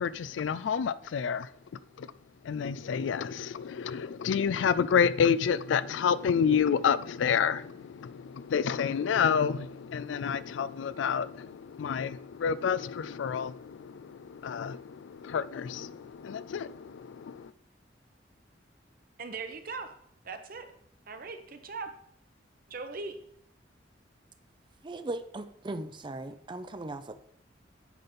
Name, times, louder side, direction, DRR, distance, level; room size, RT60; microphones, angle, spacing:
voice 1, 0.0-2.1 2.4-17.5, left 7 dB, 80° left, 0.4 m, -29 dB
voice 2, 19.2-19.9 20.2-20.7 21.1-21.9 22.7-23.2, right 4 dB, 50° right, 0.9 m, -39 dB
voice 3, 24.8-27.1, right 2 dB, 25° right, 0.6 m, -38 dB
9.5 x 4.1 x 5.2 m
head